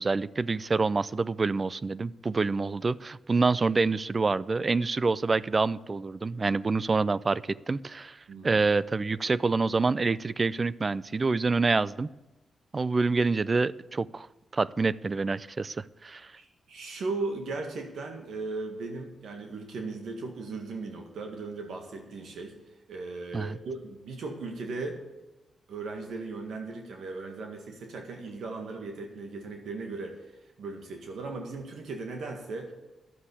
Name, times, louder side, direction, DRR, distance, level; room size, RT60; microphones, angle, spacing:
voice 1, 0.0-12.1 12.7-14.3 14.5-16.3 23.3-23.6, right 3 dB, 35° right, 19 dB, 0.4 m, -27 dB
voice 2, 8.3-8.6 16.4-22.6 22.9-25.0 25.7-32.7, right 3 dB, 80° right, 3 dB, 1.8 m, -37 dB
11.5 x 7.4 x 8.3 m, 1.1 s
cardioid pair, 75°, 0 cm